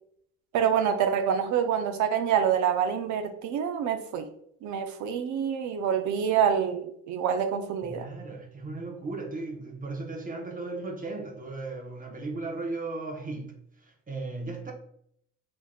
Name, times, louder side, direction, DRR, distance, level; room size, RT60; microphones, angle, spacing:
voice 1, 0.5-4.3 4.6-8.1, right 8 dB, 75° right, 0.5 m, -26 dB
voice 2, 7.8-14.7, right 3 dB, 30° right, 0.6 m, -36 dB
3.4 x 3.1 x 2.3 m
cardioid pair, 90°, 30 cm